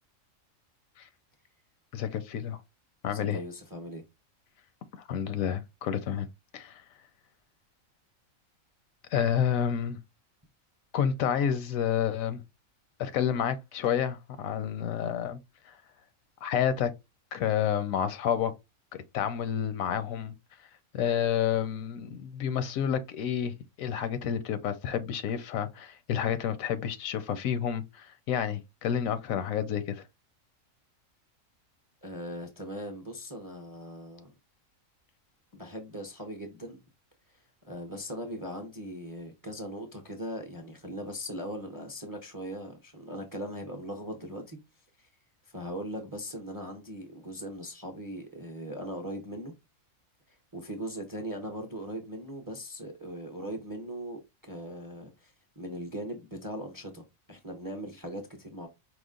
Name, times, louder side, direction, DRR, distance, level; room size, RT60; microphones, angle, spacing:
voice 1, 1.9-2.6 3.0-3.4 5.1-6.3 6.5-6.8 9.1-10.0 10.9-12.4 13.0-15.4 16.4-16.9 17.3-18.5 19.1-20.3 20.9-30.0, left 9 dB, 80° left, 1.1 m, -29 dB
voice 2, 3.0-4.0 32.0-34.3 35.5-36.8 37.6-44.6 45.0-45.1 45.5-49.5 50.5-58.7, equal, 25° right, 0.5 m, -39 dB
5.0 x 2.0 x 3.7 m
omnidirectional pair, 1.4 m